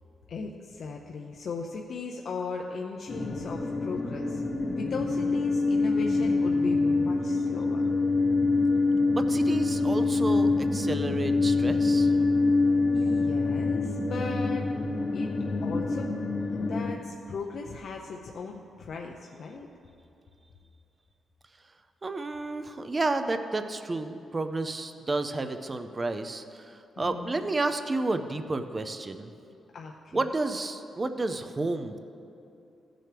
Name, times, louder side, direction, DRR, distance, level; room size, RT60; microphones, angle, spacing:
voice 1, 0.3-7.9 12.9-14.7 15.1-15.3 15.6-16.1 16.6-19.7 27.0-27.5 29.7-30.2, left 4 dB, 55° left, 0 dB, 0.6 m, -37 dB
sound 1, 3.1-16.9, left 3 dB, 30° left, 0.8 m, -25 dB
voice 2, 9.1-12.1 22.0-29.3 30.1-32.0, right 2 dB, 20° right, 8 dB, 0.5 m, -31 dB
16.0 x 7.6 x 3.4 m, 2.8 s
wide cardioid pair, 145°, 0 cm